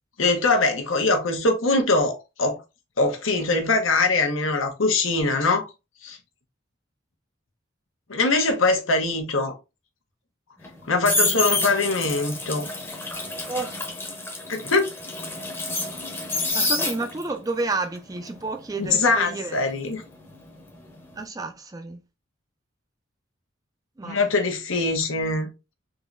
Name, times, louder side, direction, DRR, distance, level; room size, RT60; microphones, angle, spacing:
voice 1, 0.2-2.6 3.0-5.7 6.0-6.2 8.1-9.6 10.9-12.7 14.5-14.9 18.8-20.0 24.0-25.5, left 3 dB, 90° left, 0.9 m, -22 dB
sound 1, 10.6-17.4 17.7-20.6 20.9-21.2, left 2 dB, 10° left, 0.8 m, -28 dB
voice 2, 16.5-19.5 21.2-22.0 24.0-24.2, right 3 dB, 20° right, 0.4 m, -30 dB
3.8 x 3.0 x 2.5 m
head